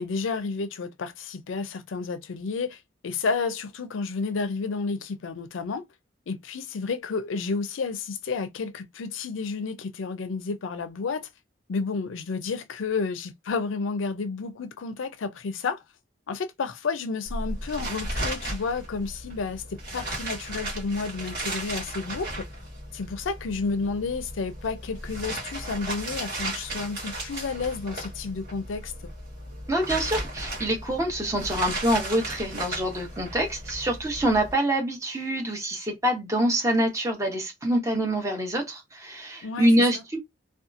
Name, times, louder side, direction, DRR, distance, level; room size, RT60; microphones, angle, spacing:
voice 1, 0.0-5.8 6.3-11.3 11.7-15.8 16.3-22.3 22.9-28.9 39.4-40.0, left 4 dB, 85° left, 0.5 m, -31 dB
sound 1, 17.3-34.5, right 1 dB, 50° right, 1.4 m, -35 dB
voice 2, 29.7-40.2, right 1 dB, 15° right, 0.7 m, -25 dB
2.7 x 2.3 x 2.5 m
head